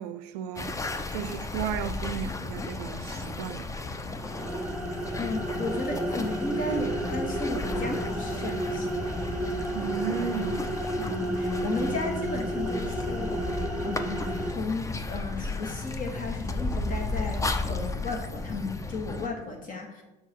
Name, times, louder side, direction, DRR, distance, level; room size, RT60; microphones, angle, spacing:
voice 1, 0.0-3.7 9.7-10.8, right 8 dB, 75° right, 0.5 m, -35 dB
sound 1, 0.6-19.3, left 3 dB, 15° left, 0.6 m, -34 dB
sound 2, 4.1-14.5, right 1 dB, 5° right, 1.1 m, -32 dB
voice 2, 5.2-9.2 11.0-13.6 13.8-20.0, left 2 dB, 40° left, 1.8 m, -34 dB
6.4 x 4.6 x 4.5 m
hypercardioid pair, 80°, 20 cm